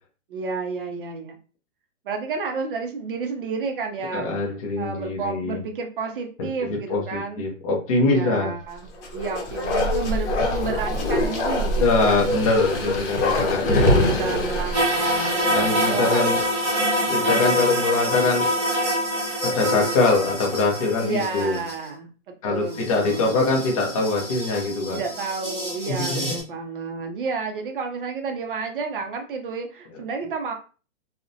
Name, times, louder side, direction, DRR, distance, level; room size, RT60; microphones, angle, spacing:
voice 1, 0.3-1.4 2.0-4.3 4.8-7.4 8.0-12.4 13.2-13.4 13.7-16.2 17.2-17.8 21.0-22.1 22.4-23.6 24.9-30.5, right 4 dB, 45° right, 4 dB, 0.4 m, -31 dB
voice 2, 4.1-5.6 6.9-8.5 11.8-14.1 15.5-16.4 17.1-18.5 19.4-21.6 22.4-25.0 25.9-26.4, left 3 dB, 30° left, -2 dB, 0.4 m, -23 dB
Bark, 9.0-16.5 16.9-17.0, left 1 dB, 65° left, 0.7 m, -24 dB
sound 1, 14.7-21.8 22.7-26.4, equal, 20° right, 0.8 m, -26 dB
2.4 x 2.1 x 2.4 m, 0.36 s
hypercardioid pair, 160°, 38 cm